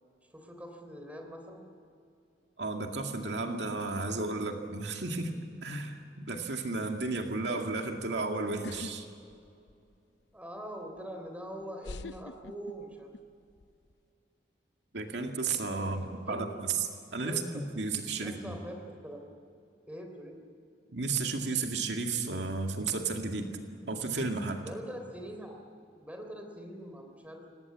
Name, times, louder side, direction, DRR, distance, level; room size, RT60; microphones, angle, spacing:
voice 1, 0.3-1.6 10.3-13.1 15.8-16.5 17.3-17.6 18.2-19.2 19.9-20.4 24.6-25.6 25.9-27.6, equal, 10° right, 3 dB, 3.4 m, -43 dB
voice 2, 2.6-5.3 5.6-6.0 6.2-9.1 14.9-18.6 20.9-23.5 23.9-24.7, right 3 dB, 80° right, 3 dB, 2.2 m, -33 dB
sound 1, 8.6-8.9 9.3-9.9 11.0-11.1 11.8-13.2 13.5-13.9, left 3 dB, 80° left, 0.7 m, -43 dB
27.0 x 18.5 x 8.6 m, 2.5 s
head